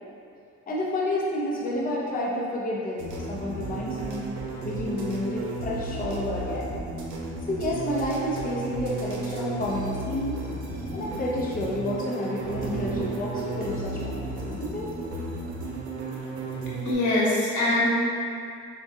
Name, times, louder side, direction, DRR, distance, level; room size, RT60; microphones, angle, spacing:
voice 1, 0.7-4.3 4.6-6.7 7.5-10.4 10.9-14.9, left 1 dB, 30° left, -5 dB, 0.7 m, -30 dB
sound 1, 3.0-16.9, right 3 dB, 90° right, 0.7 m, -34 dB
sound 2, 10.7-11.7 12.0-12.1 12.4-15.8, right 2 dB, 60° right, 0.8 m, -40 dB
voice 2, 16.8-17.9, left 1 dB, 75° left, -7 dB, 1.3 m, -23 dB
6.6 x 2.3 x 2.8 m, 2.4 s
cardioid pair, 90°, 30 cm